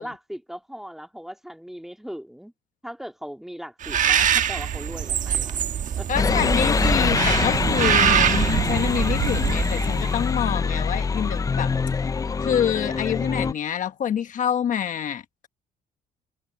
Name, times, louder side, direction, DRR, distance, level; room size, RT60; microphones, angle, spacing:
voice 1, 0.0-2.5 2.8-5.6 6.0-6.1 7.8-8.1, equal, ahead, 2.4 m, -38 dB
Bird, 3.8-10.2, right 9 dB, 50° right, 1.3 m, -24 dB
voice 2, 6.1-11.7 12.0-12.1 12.4-15.5, left 9 dB, 50° left, 1.2 m, -27 dB
sound 1, 6.1-13.5, left 5 dB, 20° left, 0.5 m, -24 dB
cardioid pair, 110°, 17 cm